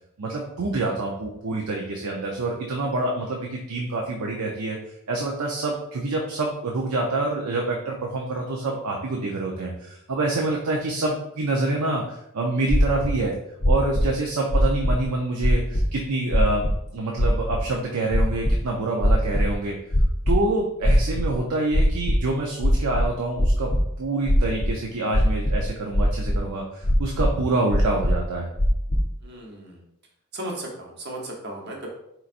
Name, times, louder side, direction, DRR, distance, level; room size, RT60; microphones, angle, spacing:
voice 1, 0.2-4.8 5.1-13.3 13.6-19.8 20.3-23.7 24.0-28.5, right 2 dB, 90° right, 0 dB, 0.6 m, -26 dB
sound 1, 12.7-13.1 13.6-14.1 14.5-15.0 15.4-15.8 16.3-16.7 17.2-17.6 18.1-18.6 19.0-19.5 19.9-20.4 20.8-21.4 21.7-22.2 22.6-23.8 24.3-24.7 25.1-25.7 25.9-26.4 26.8-27.3 27.7-28.2 28.6-29.0, equal, 30° left, 0.5 m, -20 dB
voice 2, 29.2-29.8 30.3-31.9, right 1 dB, 50° right, -1 dB, 1.0 m, -35 dB
4.4 x 4.0 x 2.5 m, 0.78 s
head